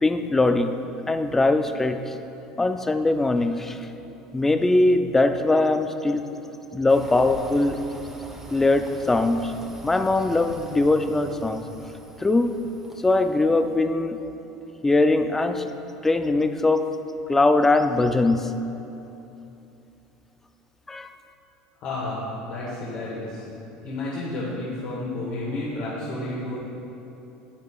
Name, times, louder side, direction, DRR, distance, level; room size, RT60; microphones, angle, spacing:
voice 1, 0.0-2.1 2.6-3.8 4.3-6.2 6.7-7.9 8.5-9.6 9.8-11.6 12.2-12.5 13.0-14.3 14.8-15.7 16.0-16.9 17.3-18.5 20.9-21.1, left 2 dB, 10° left, 9 dB, 0.4 m, -21 dB
sound 1, 6.9-13.8, right 2 dB, 15° right, 1.0 m, -44 dB
voice 2, 21.7-23.5 23.8-26.6, left 2 dB, 60° left, -7 dB, 1.6 m, -31 dB
10.5 x 8.2 x 2.4 m, 2.9 s
supercardioid pair, 110°, 3 cm